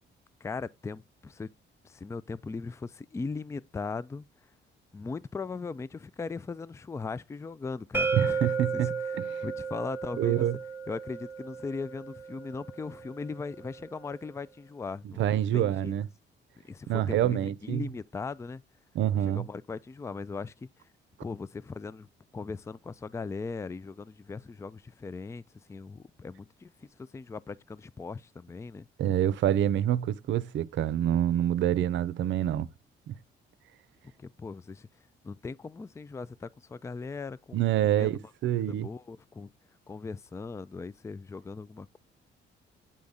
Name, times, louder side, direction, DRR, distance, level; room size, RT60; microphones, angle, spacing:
voice 1, 0.4-1.5 1.8-4.3 4.9-10.5 10.9-15.2 15.5-16.0 16.6-18.6 19.2-20.9 21.2-22.1 22.3-25.4 25.7-28.9 34.2-34.9 35.2-38.1 38.7-39.5 39.9-42.0, left 4 dB, 15° left, 0.3 m, -39 dB
sound 1, 7.9-13.7, right 5 dB, 10° right, 1.1 m, -34 dB
voice 2, 8.1-9.4 10.2-10.6 15.2-16.1 16.9-17.9 18.9-19.5 29.0-32.7 33.1-33.2 37.5-38.9, right 11 dB, 70° right, 0.6 m, -27 dB
8.7 x 3.5 x 4.0 m
cardioid pair, 90°, 20 cm